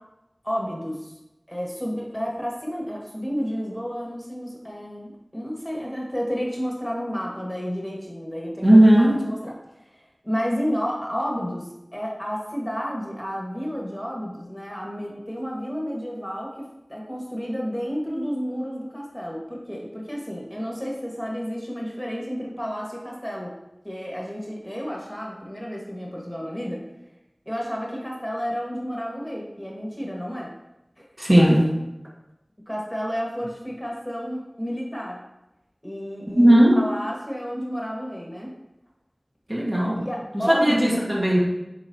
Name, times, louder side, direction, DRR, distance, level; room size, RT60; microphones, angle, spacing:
voice 1, 0.4-1.1 1.5-9.5 10.2-23.5 23.8-26.8 27.4-30.5 31.0-31.1 32.7-35.2 35.8-38.5 40.0-41.0, equal, 10° left, -2 dB, 1.5 m, -31 dB
voice 2, 8.6-9.2 31.2-31.7 36.3-36.8 39.5-40.0 40.3-41.4, right 1 dB, 30° right, -4 dB, 1.2 m, -16 dB
8.0 x 4.7 x 2.7 m, 0.96 s
wide cardioid pair, 45°, 0 cm